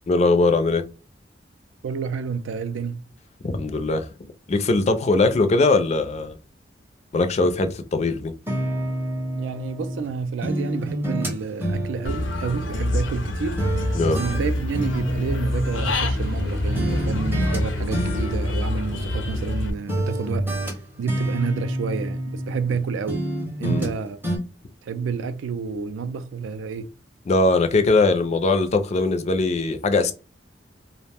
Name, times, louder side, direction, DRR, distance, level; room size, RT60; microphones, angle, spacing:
voice 1, 0.1-0.8 3.4-4.1 4.5-6.3 7.1-8.3 13.9-14.2 23.6-23.9 27.3-30.1, left 3 dB, 35° left, 0.4 m, -20 dB
voice 2, 1.8-3.0 9.3-13.6 14.1-20.5 21.0-23.2 23.6-24.2 24.8-26.9, right 5 dB, 80° right, 0.3 m, -29 dB
sound 1, 8.5-10.1 10.4-13.3 13.6-16.4 16.8-17.6 17.9-19.6 19.9-22.8 23.1-24.0 24.2-24.4, right 1 dB, 10° right, 0.6 m, -28 dB
Human voice / Bird, 12.0-19.7, left 1 dB, 85° left, 0.5 m, -26 dB
sound 2, 14.3-24.4, left 1 dB, 55° right, 0.7 m, -41 dB
2.4 x 2.1 x 3.3 m
head